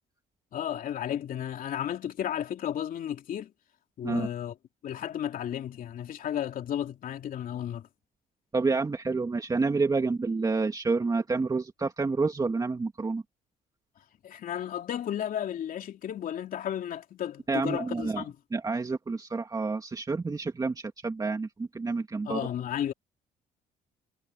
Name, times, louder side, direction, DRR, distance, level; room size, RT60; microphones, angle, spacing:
voice 1, 0.5-3.5 4.0-4.6 4.8-7.9 14.2-18.4 22.2-22.9, left 10 dB, 55° left, 3.0 m, -33 dB
voice 2, 8.5-13.2 17.5-18.2 18.5-22.4, right 4 dB, 20° right, 2.4 m, -29 dB
cardioid pair, 110°, 17 cm